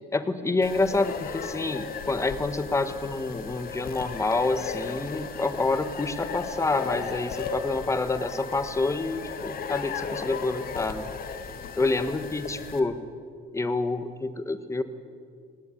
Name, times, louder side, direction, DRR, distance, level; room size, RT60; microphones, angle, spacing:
voice 1, 0.1-11.1 11.8-13.0 13.5-14.8, left 3 dB, 15° left, 11 dB, 1.5 m, -28 dB
sound 1, 0.6-12.8, left 5 dB, 60° left, 1.8 m, -36 dB
19.0 x 17.5 x 9.6 m, 2.2 s
cardioid pair, 110°, 17 cm